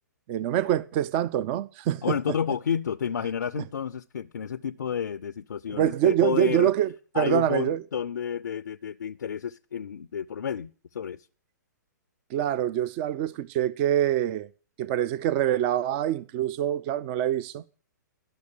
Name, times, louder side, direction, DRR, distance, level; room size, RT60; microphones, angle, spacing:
voice 1, 0.3-2.2 5.7-7.8 12.3-14.5 14.8-17.6, right 11 dB, 35° right, 0.6 m, -25 dB
voice 2, 2.0-6.7 7.1-11.3, left 7 dB, 75° left, 0.5 m, -30 dB
12.0 x 6.5 x 8.5 m
hypercardioid pair, 125°, 10 cm